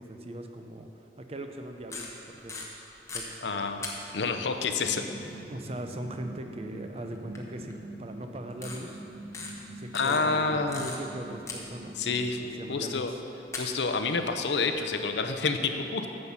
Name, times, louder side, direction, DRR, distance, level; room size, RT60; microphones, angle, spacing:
voice 1, 0.0-2.7 3.1-3.9 5.4-9.0 9.8-13.2, right 1 dB, 35° right, 5 dB, 0.6 m, -40 dB
sound 1, 1.9-3.2 3.8-4.4 6.2-6.3 7.3-7.4 7.7-7.8 8.5-8.8 9.3-9.5 9.9-11.2 11.5-12.1 13.2-13.3 13.5-15.2, left 4 dB, 15° left, 1.0 m, -39 dB
voice 2, 3.4-3.9 4.1-5.0 9.9-10.9 12.0-12.4 12.7-13.1 13.6-16.1, left 4 dB, 70° left, 7 dB, 0.7 m, -28 dB
sound 2, 4.8-12.7, right 1 dB, 80° right, 1.6 m, -45 dB
9.6 x 7.7 x 5.7 m, 3.0 s
head